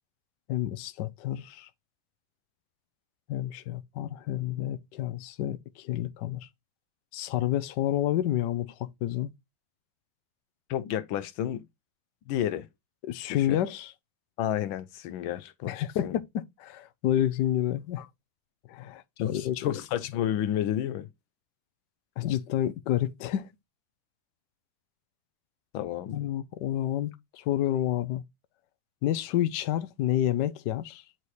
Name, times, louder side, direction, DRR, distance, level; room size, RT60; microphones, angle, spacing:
voice 1, 0.5-1.7 3.3-6.4 7.1-9.3 13.0-13.9 15.7-18.0 18.7-19.7 22.2-23.5 26.1-28.2 29.0-31.0, left 12 dB, 70° left, 1.2 m, -29 dB
voice 2, 10.7-11.6 12.3-12.7 13.3-13.6 14.4-16.2 18.0-18.1 19.2-21.1 25.7-26.2, left 11 dB, 90° left, 1.4 m, -31 dB
9.4 x 3.2 x 4.2 m
omnidirectional pair, 2.1 m